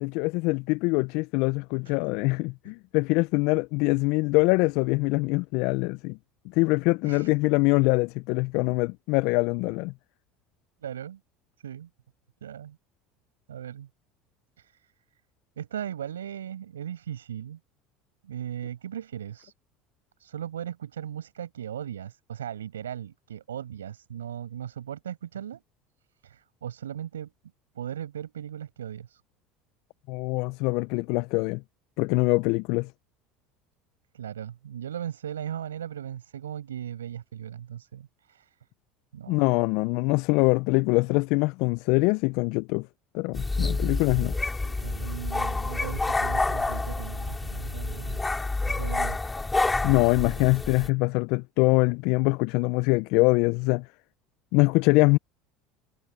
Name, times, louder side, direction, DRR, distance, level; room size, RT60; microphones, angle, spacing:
voice 1, 0.0-6.2 6.5-9.9 30.1-31.6 32.0-32.9 39.3-42.9 43.1-44.4 49.8-53.9 54.5-55.2, left 26 dB, 65° left, 0.6 m, -24 dB
voice 2, 10.8-11.2 11.6-11.9 12.4-12.8 13.5-13.9 14.6-14.8 15.6-17.6 18.2-19.5 20.2-25.6 26.2-27.3 27.7-29.2 34.1-38.5 39.1-39.4 44.6-48.2 48.7-49.2, right 10 dB, 85° right, 6.2 m, -37 dB
sound 1, 43.3-50.9, left 3 dB, 15° left, 5.9 m, -28 dB
hypercardioid pair, 75°, 0 cm